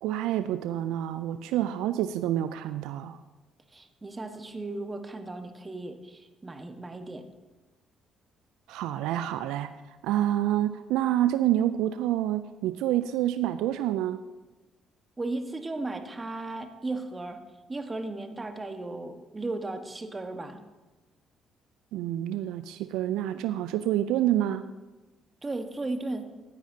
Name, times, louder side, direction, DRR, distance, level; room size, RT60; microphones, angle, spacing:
voice 1, 0.0-3.2 8.7-14.2 21.9-24.7, right 12 dB, 80° right, 11 dB, 0.3 m, -28 dB
voice 2, 3.7-7.3 15.2-17.4 17.7-20.6 25.4-26.3, right 2 dB, 25° right, 7 dB, 1.3 m, -35 dB
16.0 x 9.8 x 2.8 m, 1.2 s
supercardioid pair, 55°, 0 cm